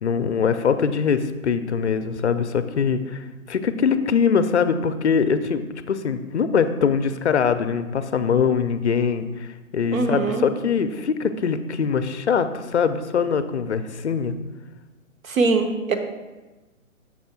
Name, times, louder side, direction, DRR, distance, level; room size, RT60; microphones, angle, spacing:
voice 1, 0.0-5.6 5.9-14.3, left 6 dB, 55° left, 11 dB, 0.5 m, -22 dB
voice 2, 9.9-10.4 15.2-15.9, right 3 dB, 70° right, 6 dB, 0.9 m, -22 dB
6.2 x 3.5 x 5.8 m, 1.2 s
hypercardioid pair, 170°, 42 cm